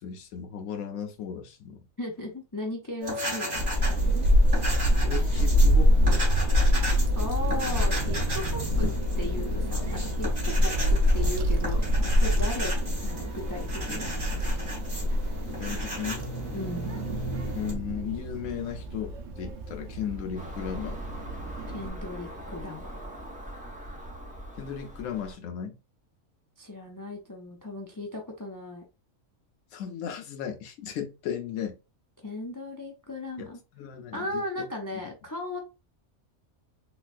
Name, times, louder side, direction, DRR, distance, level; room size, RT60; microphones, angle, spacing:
voice 1, 0.0-1.8 5.0-6.3 15.5-16.3 17.6-21.0 24.6-25.8 29.7-31.8 33.4-34.4, left 8 dB, 75° left, 1.0 m, -36 dB
voice 2, 2.0-4.3 7.1-8.9 9.2-11.8 12.1-14.1 16.5-17.0 21.7-23.0 26.6-28.8 32.2-33.6 34.1-35.6, left 1 dB, 35° left, 0.3 m, -36 dB
sound 1, 3.0-17.7, equal, 40° right, 1.7 m, -36 dB
Child speech kid speaking / Wind, 3.5-21.9, equal, 70° right, 1.0 m, -26 dB
Car passing by / Engine, 20.3-25.3, equal, 10° right, 0.6 m, -40 dB
3.9 x 2.3 x 2.4 m
omnidirectional pair, 1.4 m